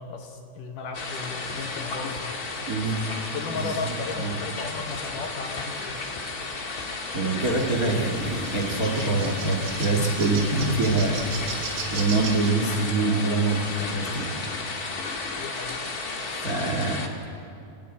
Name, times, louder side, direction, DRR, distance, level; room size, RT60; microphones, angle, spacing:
voice 1, 0.0-2.4 3.3-6.0 15.4-15.9, left 4 dB, 65° left, 4 dB, 2.3 m, -35 dB
sound 1, 0.9-17.1, left 3 dB, 50° left, 1.1 m, -33 dB
sound 2, 1.5-1.7 2.2-2.4 2.9-3.1 4.3-4.5 4.9-5.1 5.6-5.8 6.2-6.3 6.8-6.9 8.2-8.8 9.1-9.3 9.9-10.1 10.7-11.0 11.4-11.6, left 3 dB, 85° left, 3.8 m, -46 dB
voice 2, 2.7-4.4 7.1-14.3 16.3-17.0, right 3 dB, 35° right, 2 dB, 1.4 m, -25 dB
sound 3, 7.4-12.5, right 5 dB, 90° right, 4.5 m, -37 dB
27.0 x 14.0 x 9.1 m, 2.7 s
omnidirectional pair, 4.6 m